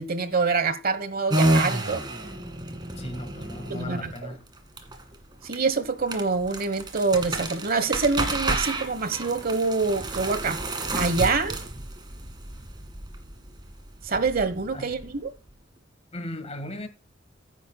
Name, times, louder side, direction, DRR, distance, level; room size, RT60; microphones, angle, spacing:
voice 1, 0.0-2.0 3.7-4.3 5.4-10.6 10.9-11.6 14.0-15.3, right 4 dB, 50° right, 1.1 m, -26 dB
sound 1, 1.3-15.5, right 1 dB, 20° right, 2.0 m, -30 dB
voice 2, 3.0-4.4 14.7-15.0 16.1-16.9, left 1 dB, 35° left, 1.6 m, -37 dB
15.5 x 10.0 x 2.2 m
head